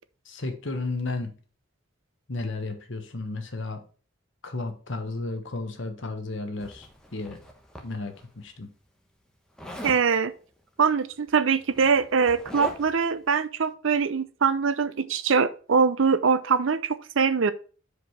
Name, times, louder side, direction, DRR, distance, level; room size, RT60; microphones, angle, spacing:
voice 1, 0.3-1.3 2.3-3.8 4.4-6.9 7.1-7.4 7.8-8.7, left 3 dB, 60° left, 1.2 m, -33 dB
Zipper (clothing), 6.6-8.3 9.6-10.1 11.2-11.3 11.6-13.1, left 1 dB, 5° left, 1.0 m, -40 dB
voice 2, 9.8-10.3 10.8-17.5, right 5 dB, 65° right, 0.5 m, -23 dB
5.1 x 4.8 x 5.7 m
head